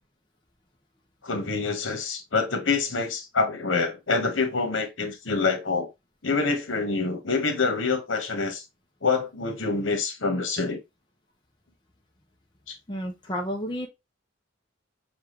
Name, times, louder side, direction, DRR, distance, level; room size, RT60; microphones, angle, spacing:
voice 1, 1.2-5.9 6.2-8.6 9.0-10.8 12.7-12.8, left 4 dB, 70° left, 1.2 m, -26 dB
voice 2, 12.9-13.9, equal, 25° left, 0.7 m, -31 dB
7.0 x 2.4 x 3.1 m
head